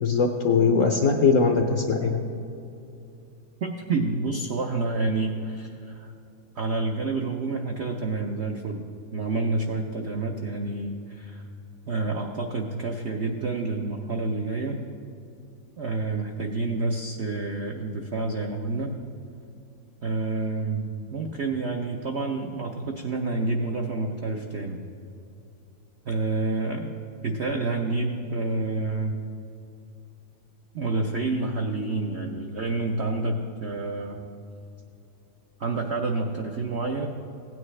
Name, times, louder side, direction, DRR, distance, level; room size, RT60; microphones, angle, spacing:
voice 1, 0.0-2.2, left 5 dB, 70° left, 3 dB, 0.7 m, -21 dB
voice 2, 3.6-6.1 6.6-8.8 9.1-11.4 11.9-14.8 15.8-19.0 20.0-24.8 26.0-26.9 27.2-29.2 30.7-34.2 35.6-37.1, right 3 dB, 75° right, 2 dB, 0.6 m, -28 dB
16.0 x 9.3 x 3.2 m, 2.7 s
omnidirectional pair, 2.0 m